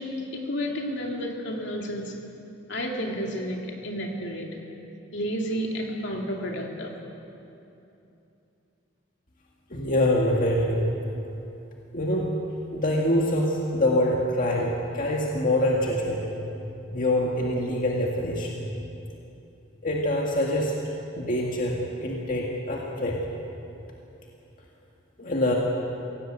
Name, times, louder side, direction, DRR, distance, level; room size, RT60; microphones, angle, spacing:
voice 1, 0.0-2.2 2.7-4.5 5.1-6.9, equal, 65° left, 1 dB, 2.8 m, -31 dB
voice 2, 9.7-10.8 11.9-12.3 12.7-16.3 16.9-18.6 19.8-20.7 21.2-23.2 25.2-25.5, left 1 dB, 45° left, -2 dB, 2.1 m, -25 dB
25.0 x 17.5 x 7.8 m, 2.9 s
head